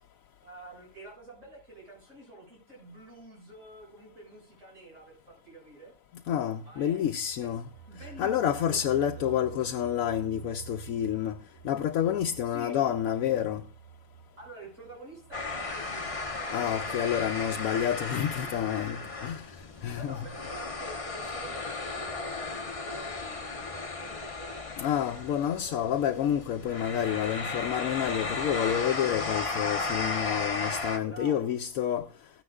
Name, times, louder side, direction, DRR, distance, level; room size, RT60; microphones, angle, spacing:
voice 1, 0.4-5.9 6.6-7.1 7.4-7.5 7.9-10.0 12.4-13.0 14.4-17.9 18.2-19.0 19.9-24.6 25.0-25.9 31.1-31.5, right 2 dB, 65° right, 7.3 m, -48 dB
voice 2, 6.3-7.6 8.2-11.4 11.6-13.6 16.5-19.0 19.2-19.5 19.8-20.2 24.8-32.1, left 10 dB, 85° left, 1.1 m, -29 dB
sound 1, 6.9-17.6 18.0-18.1 18.4-18.5, right 9 dB, 80° right, 1.3 m, -50 dB
sound 2, 15.3-31.0, left 3 dB, 30° left, 1.0 m, -35 dB
15.5 x 9.8 x 2.4 m
omnidirectional pair, 1.4 m